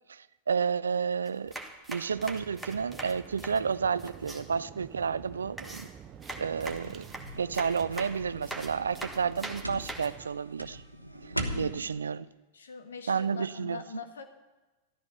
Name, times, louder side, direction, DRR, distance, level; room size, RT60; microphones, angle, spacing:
voice 1, 0.1-1.5 1.9-5.9 6.4-7.1 7.3-10.8 11.2-12.3 13.1-13.8, right 6 dB, 70° right, 18 dB, 0.4 m, -31 dB
sound 1, 1.3-4.4 5.6-10.1, right 1 dB, ahead, 1.6 m, -42 dB
sound 2, 2.1-10.3, right 9 dB, 30° right, 0.7 m, -49 dB
sound 3, 6.4-11.9, right 1 dB, 90° right, 1.1 m, -40 dB
voice 2, 11.3-12.0 12.5-14.3, left 6 dB, 70° left, 6 dB, 1.5 m, -43 dB
13.5 x 13.5 x 5.5 m, 1.1 s
figure-of-eight pair, 90°, 0 cm